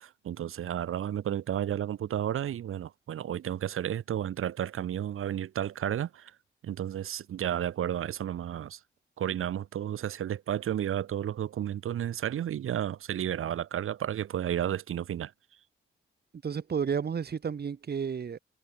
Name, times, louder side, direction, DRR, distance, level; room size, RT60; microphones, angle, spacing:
voice 1, 0.0-6.4 6.6-8.8 9.2-15.3, right 10 dB, 90° right, 1.9 m, -32 dB
voice 2, 16.4-18.4, right 6 dB, 50° right, 2.1 m, -31 dB
cardioid pair, 110°, 21 cm